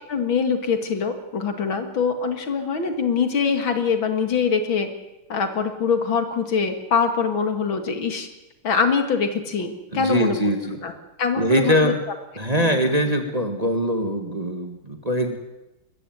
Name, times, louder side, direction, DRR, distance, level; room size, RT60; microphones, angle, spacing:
voice 1, 0.1-4.9 5.3-8.3 8.6-10.4 10.8-10.9 11.2-11.9, left 5 dB, 65° left, 7 dB, 2.7 m, -23 dB
voice 2, 9.9-10.8 11.4-12.0 12.4-15.4, equal, 20° right, 5 dB, 1.6 m, -22 dB
21.5 x 15.0 x 9.3 m, 1.0 s
omnidirectional pair, 2.3 m